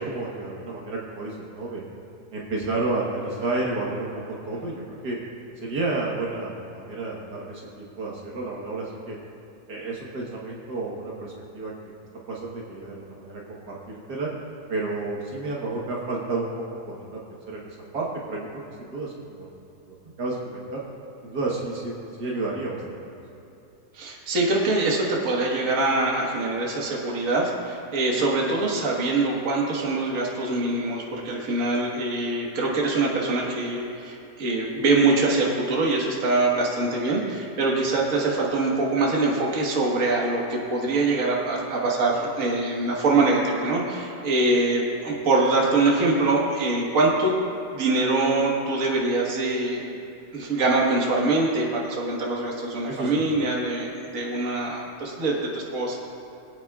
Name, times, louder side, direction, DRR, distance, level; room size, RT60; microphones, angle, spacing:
voice 1, 0.0-1.8 2.3-4.1 4.5-5.2 5.6-9.2 9.7-11.7 12.3-14.3 14.7-16.5 16.9-17.2 17.5-18.4 18.8-19.5 19.9-20.8 21.2-22.8 23.0-23.2 52.9-53.1, right 3 dB, 70° right, -3 dB, 1.8 m, -31 dB
voice 2, 23.9-47.3 47.7-49.9 50.3-56.0, right 2 dB, 50° right, -3 dB, 1.7 m, -24 dB
22.0 x 8.7 x 2.4 m, 2.8 s
omnidirectional pair, 1.9 m